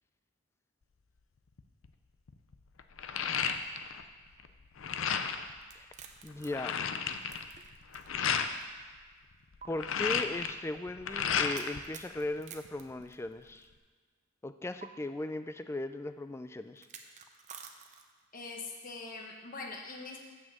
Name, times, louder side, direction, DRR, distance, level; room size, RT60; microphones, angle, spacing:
sound 1, 1.6-1.9 2.3-4.0 4.3-5.5 6.0-6.1 6.3-8.5 9.5-11.8 12.1-13.0, left 7 dB, 70° left, 0.5 m, -33 dB
sound 2, 5.6-8.3 8.6-8.7 9.6-9.7 11.5-13.7 14.8-14.9 16.8-18.3, right 7 dB, 35° right, 0.7 m, -50 dB
voice 1, 6.2-6.7 9.7-13.7 14.4-16.9, left 2 dB, 15° left, 10 dB, 0.3 m, -37 dB
voice 2, 18.3-20.2, left 3 dB, 45° left, 0 dB, 1.1 m, -43 dB
7.2 x 6.3 x 7.5 m, 1.5 s
head